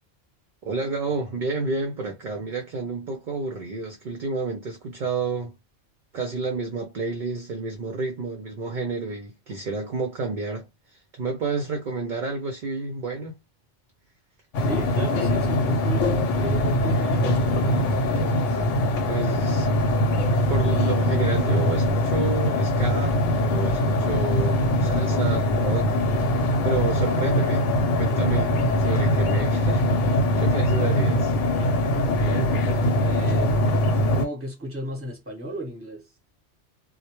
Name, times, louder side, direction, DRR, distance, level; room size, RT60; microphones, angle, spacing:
voice 1, 0.6-5.6 6.1-13.4 19.1-19.7 20.5-26.0 26.6-27.7 28.0-30.1 30.4-31.3, right 3 dB, 55° right, 0.6 m, -30 dB
sound 1, 14.5-34.3, left 1 dB, 80° left, 0.9 m, -22 dB
voice 2, 14.6-18.6 32.1-36.1, right 1 dB, 10° right, 0.9 m, -35 dB
2.1 x 2.1 x 2.9 m
omnidirectional pair, 1.3 m